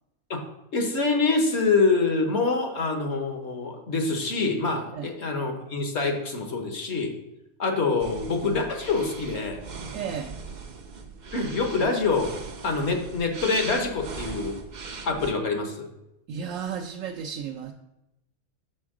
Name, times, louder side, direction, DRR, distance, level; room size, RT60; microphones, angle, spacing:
voice 1, 0.7-7.1 7.6-9.6 11.3-12.3 12.6-14.6 15.0-15.9, left 3 dB, 55° left, 4 dB, 1.2 m, -25 dB
sound 1, 8.0-15.3, right 5 dB, 50° right, 0.6 m, -40 dB
voice 2, 9.9-10.4 16.3-17.7, right 7 dB, 70° right, 2 dB, 0.9 m, -33 dB
6.8 x 4.5 x 4.8 m, 0.87 s
omnidirectional pair, 1.5 m